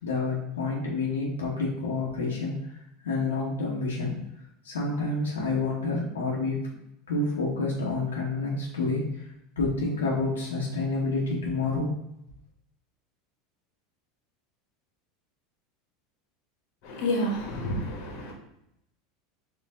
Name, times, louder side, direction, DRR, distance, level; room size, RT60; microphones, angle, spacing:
voice 1, 0.0-2.6 3.0-4.2 4.6-6.6 7.1-9.2 9.6-11.9, left 3 dB, 90° left, -5 dB, 1.0 m, -28 dB
voice 2, 16.8-18.3, left 1 dB, 60° left, 0 dB, 1.3 m, -29 dB
4.4 x 2.5 x 3.7 m, 0.81 s
hypercardioid pair, 90°, 0 cm